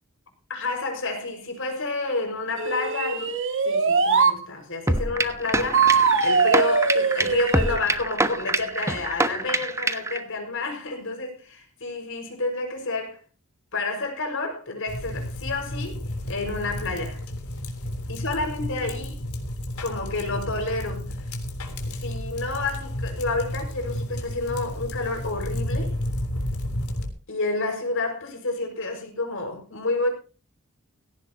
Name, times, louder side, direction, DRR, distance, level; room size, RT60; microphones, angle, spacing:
voice 1, 0.5-3.4 3.6-13.2 13.7-16.0 16.3-17.2 18.1-19.2 19.8-21.3 21.9-26.0 27.3-30.1, left 3 dB, 60° left, 5.7 m, -29 dB
sound 1, 2.6-4.4 5.7-7.8, right 5 dB, 60° right, 2.3 m, -21 dB
sound 2, 4.9-10.2, right 2 dB, 15° right, 1.1 m, -25 dB
sound 3, 14.9-27.1, left 1 dB, 90° left, 3.6 m, -32 dB
17.0 x 15.5 x 2.9 m
head